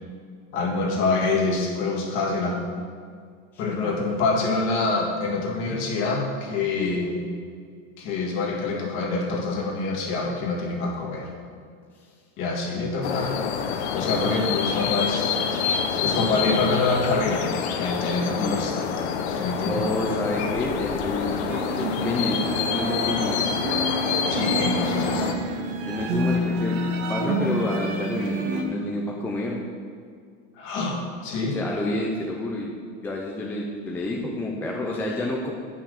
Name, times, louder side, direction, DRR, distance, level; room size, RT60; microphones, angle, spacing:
voice 1, 0.5-2.6 3.6-7.2 8.0-11.3 12.4-13.3 13.9-15.4 16.0-17.5 17.8-18.8 19.3-19.8 24.3-25.3 30.5-31.6, left 3 dB, 40° left, -1 dB, 1.8 m, -26 dB
voice 2, 3.5-4.2 6.8-7.0 14.1-14.4 18.4-18.6 19.7-23.5 25.8-29.6 31.5-32.7 33.0-35.5, left 2 dB, 5° left, -2 dB, 0.4 m, -29 dB
sound 1, 13.0-25.3, left 7 dB, 90° left, 1.0 m, -27 dB
sound 2, 21.5-28.6, right 1 dB, 60° right, 1.3 m, -28 dB
9.3 x 5.9 x 6.5 m, 2.1 s
supercardioid pair, 170°, 32 cm